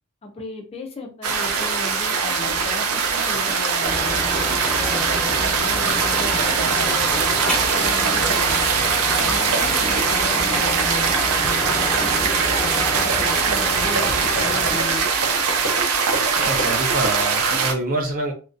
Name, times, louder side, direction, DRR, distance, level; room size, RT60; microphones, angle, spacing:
voice 1, 0.2-4.2 4.7-8.7 9.2-11.1 11.6-15.1, left 2 dB, 25° left, 3 dB, 0.3 m, -35 dB
sound 1, 1.2-17.7, right 5 dB, 80° right, 0.5 m, -21 dB
sound 2, 3.8-14.8, left 1 dB, 5° left, 0.9 m, -30 dB
sound 3, 12.7-17.6, right 1 dB, 60° right, 1.1 m, -32 dB
voice 2, 16.3-18.3, right 2 dB, 40° right, 1 dB, 0.6 m, -26 dB
2.5 x 2.1 x 2.5 m, 0.36 s
head